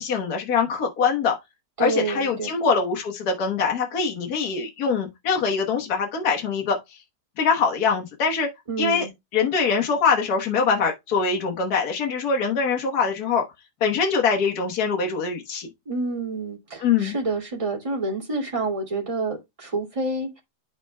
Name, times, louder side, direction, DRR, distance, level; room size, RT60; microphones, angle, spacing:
voice 1, 0.0-1.4 1.8-6.8 7.4-8.5 8.8-9.1 9.3-13.4 13.8-15.7 16.8-17.1, left 5 dB, 65° left, 1.7 m, -23 dB
voice 2, 1.8-2.5 8.7-9.1 15.9-20.4, right 3 dB, 20° right, 2.6 m, -28 dB
12.0 x 4.4 x 2.2 m
omnidirectional pair, 1.8 m